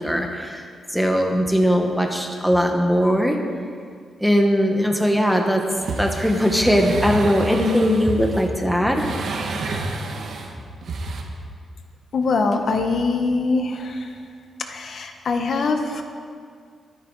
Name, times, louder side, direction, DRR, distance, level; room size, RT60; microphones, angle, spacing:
voice 1, 0.0-3.4 4.2-5.6 6.0-9.1, equal, ahead, 3 dB, 1.1 m, -20 dB
sound 1, 5.7-8.5 9.0-10.5 10.8-11.2, right 3 dB, 60° right, 1.5 m, -30 dB
voice 2, 12.1-14.1 14.7-16.0, left 3 dB, 50° left, 5 dB, 1.2 m, -23 dB
22.0 x 9.5 x 4.7 m, 2.1 s
wide cardioid pair, 155°, 0 cm